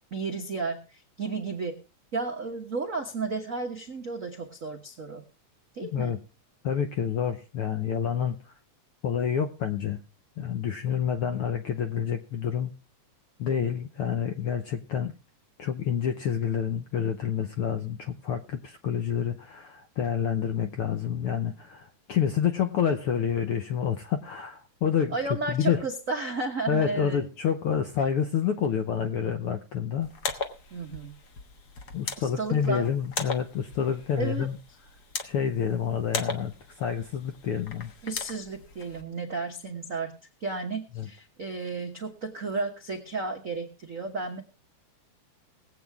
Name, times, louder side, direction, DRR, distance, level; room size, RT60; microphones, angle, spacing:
voice 1, 0.0-1.8 2.1-5.2 5.7-6.1 25.1-27.2 30.7-31.1 32.2-32.9 34.2-34.5 38.0-40.1 40.4-44.4, right 3 dB, 70° right, 0.7 m, -33 dB
voice 2, 6.6-8.4 9.0-10.0 10.4-12.7 13.4-15.1 15.6-25.2 25.5-25.8 26.7-30.1 31.9-34.6 35.2-37.9 41.0-41.1, left 8 dB, 75° left, 1.3 m, -28 dB
sound 1, 30.0-39.0, left 4 dB, 55° left, 1.2 m, -38 dB
20.5 x 8.3 x 3.5 m
omnidirectional pair, 3.5 m